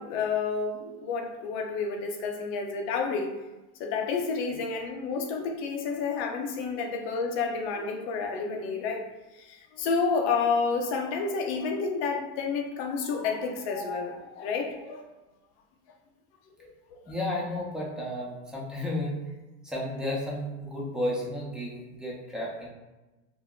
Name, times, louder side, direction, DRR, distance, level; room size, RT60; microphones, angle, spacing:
voice 1, 0.0-3.4 3.8-9.0 9.3-15.1 16.6-17.2, left 5 dB, 70° left, 3 dB, 0.6 m, -30 dB
voice 2, 17.1-19.2 19.6-22.7, left 1 dB, ahead, -5 dB, 0.6 m, -32 dB
2.2 x 2.0 x 3.6 m, 1.1 s
supercardioid pair, 120°, 34 cm